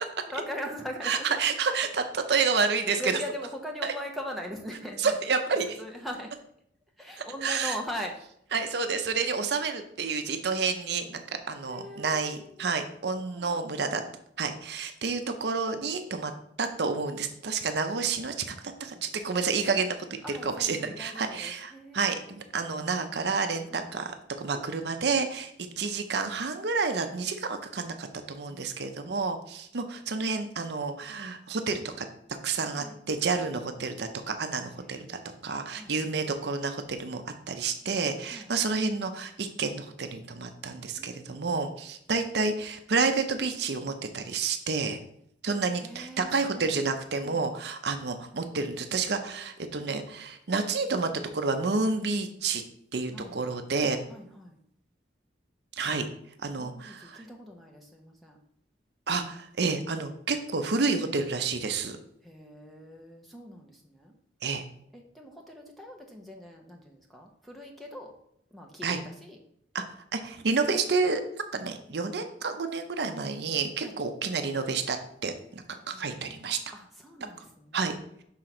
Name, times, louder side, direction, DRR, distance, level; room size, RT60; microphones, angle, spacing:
voice 1, 0.3-1.4 1.7-1.8 3.0-5.2 5.6-6.3 7.0-8.1 11.7-12.8 13.3-13.9 18.5-19.1 20.2-22.3 23.7-23.9 24.5-24.8 28.5-29.2 32.7-33.0 34.7-35.4 35.7-35.9 38.3-38.5 40.7-41.6 45.8-46.8 47.1-47.5 53.1-53.4 54.1-54.6 56.6-58.4 62.2-64.1 64.9-68.1 68.5-69.4 73.8-73.9 75.8-77.8, equal, ahead, 1 dB, 0.8 m, -41 dB
voice 2, 1.0-3.1 3.8-3.9 5.0-5.7 7.4-7.8 8.5-14.0 14.4-16.3 16.6-18.5 18.8-19.9 20.4-25.5 25.8-32.0 32.4-37.2 37.5-45.0 45.4-52.6 52.9-54.0 55.7-56.1 56.4-57.2 59.1-62.0 64.4-64.6 68.8-69.0 69.7-69.8 70.1-75.0 75.2-76.6 77.7-77.9, right 4 dB, 60° right, 7 dB, 0.6 m, -29 dB
5.7 x 3.8 x 5.9 m, 0.72 s
head